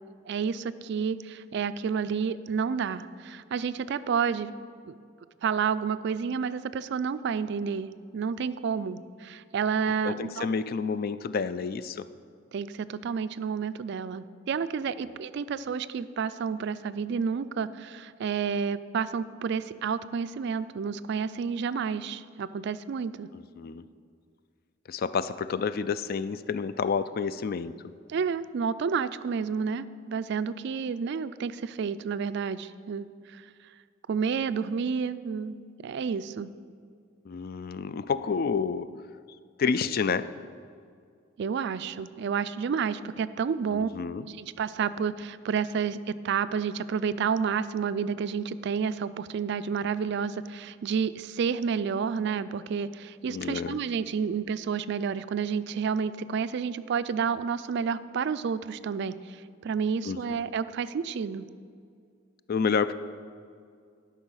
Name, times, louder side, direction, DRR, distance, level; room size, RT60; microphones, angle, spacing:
voice 1, 0.3-4.5 4.9-5.0 5.4-10.6 12.5-23.3 28.1-33.4 34.1-36.5 41.4-43.9 44.3-61.5, right 6 dB, 60° right, 14 dB, 0.3 m, -30 dB
voice 2, 10.0-12.1 23.3-23.8 24.9-27.7 37.3-38.9 39.6-40.3 43.7-44.3 53.3-53.8 60.0-60.4 62.5-62.9, left 5 dB, 45° left, 13 dB, 0.3 m, -29 dB
12.0 x 5.5 x 6.3 m, 2.2 s
head